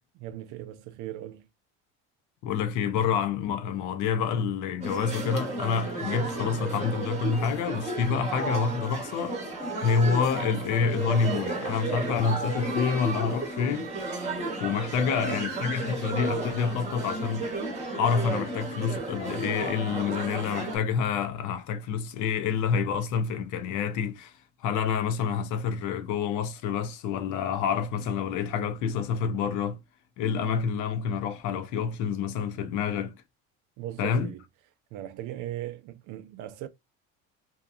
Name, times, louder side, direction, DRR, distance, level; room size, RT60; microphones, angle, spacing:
voice 1, 0.1-1.5 14.9-15.5 33.8-34.4 34.9-36.7, right 12 dB, 65° right, 0.5 m, -38 dB
voice 2, 2.4-9.4 9.8-13.9 14.6-29.8 30.2-33.1 34.0-34.3, left 6 dB, 60° left, 0.5 m, -28 dB
sound 1, 4.8-20.8, right 2 dB, 20° right, 0.9 m, -33 dB
2.8 x 2.2 x 2.3 m
cardioid pair, 125°, 34 cm